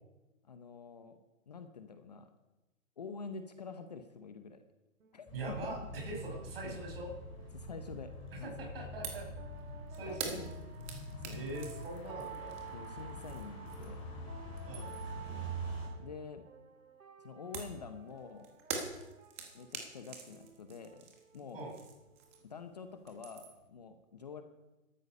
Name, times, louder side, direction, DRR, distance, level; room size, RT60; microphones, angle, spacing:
voice 1, 0.4-1.2 1.5-2.3 3.0-4.6 5.1-5.3 5.6-5.8 6.6-6.8 7.5-8.1 8.4-8.7 10.1-10.5 11.2-11.5 12.7-14.1 15.3-15.6 16.0-16.4 17.2-18.5 19.5-21.1 21.3-21.6 22.4-24.4, left 5 dB, 30° left, 8 dB, 0.8 m, -47 dB
sound 1, 5.0-22.4, right 8 dB, 75° right, 2.0 m, -54 dB
sound 2, 5.3-15.9, equal, 15° left, 3.7 m, -45 dB
voice 2, 5.3-7.1 8.3-9.2 9.9-10.4 11.3-12.6 14.6-15.0 21.5-21.7, right 2 dB, 45° right, 0 dB, 6.8 m, -42 dB
sound 3, 9.0-9.3 9.6-14.1 14.4-15.2 17.5-22.6 22.9-23.7, right 5 dB, 10° right, 0.9 m, -45 dB
13.5 x 13.0 x 5.3 m, 1.0 s
hypercardioid pair, 165°, 41 cm